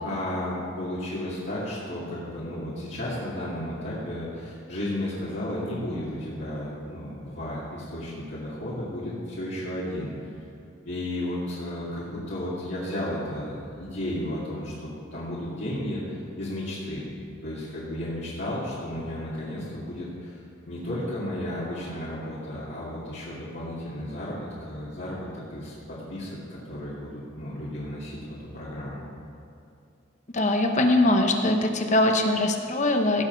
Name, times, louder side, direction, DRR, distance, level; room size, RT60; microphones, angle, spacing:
voice 1, 0.0-10.3 10.9-17.0 17.4-29.1, left 1 dB, 60° left, -10 dB, 2.4 m, -33 dB
voice 2, 30.3-33.2, left 1 dB, 35° left, 4 dB, 1.0 m, -22 dB
18.0 x 7.5 x 4.6 m, 2.6 s
head